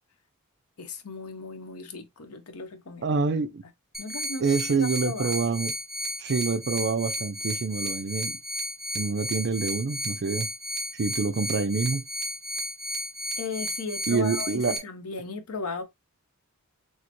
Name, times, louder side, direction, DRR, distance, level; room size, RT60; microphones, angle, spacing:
voice 1, 0.8-3.4 4.0-4.5 4.8-5.4 13.4-15.8, left 4 dB, 80° left, 1.0 m, -36 dB
voice 2, 3.0-3.6 4.4-5.7 6.2-8.4 8.9-10.5 10.9-12.1 14.1-14.8, right 4 dB, 50° right, 0.4 m, -27 dB
sound 1, 3.9-14.8, equal, ahead, 0.8 m, -33 dB
6.4 x 2.2 x 2.9 m
head